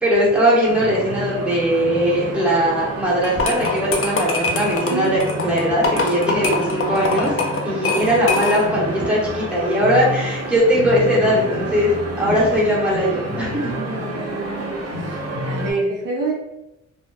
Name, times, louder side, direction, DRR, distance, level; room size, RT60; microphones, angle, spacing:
voice 1, 0.0-7.3 7.6-11.9 12.2-13.7, equal, 5° right, -7 dB, 1.1 m, -19 dB
sound 1, 0.6-15.7, equal, 50° right, 0.9 m, -29 dB
sound 2, 3.2-8.8, left 3 dB, 45° left, 0.5 m, -23 dB
voice 2, 13.8-14.8 15.5-16.3, right 3 dB, 75° right, -2 dB, 0.7 m, -26 dB
2.7 x 2.2 x 2.2 m, 0.91 s
cardioid pair, 80°, 31 cm